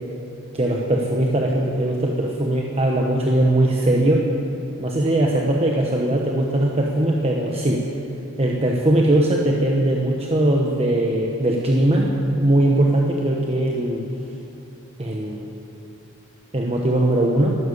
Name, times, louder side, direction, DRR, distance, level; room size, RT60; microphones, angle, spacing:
voice 1, 0.5-4.2 4.8-7.8 8.4-14.0 15.0-15.4 16.5-17.6, right 1 dB, 30° right, -1 dB, 1.1 m, -20 dB
13.0 x 12.5 x 8.3 m, 2.8 s
head